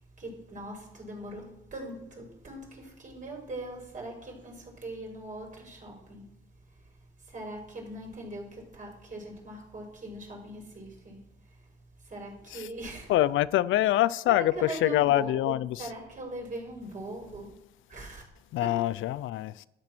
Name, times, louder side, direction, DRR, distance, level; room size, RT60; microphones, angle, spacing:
voice 1, 0.0-6.3 6.7-13.1 14.3-17.5 17.9-18.2 18.6-18.7, right 1 dB, 40° right, 5.8 m, -41 dB
voice 2, 13.1-15.9 18.5-19.7, left 14 dB, 80° left, 0.5 m, -25 dB
12.5 x 10.5 x 6.0 m
cardioid pair, 90°, 20 cm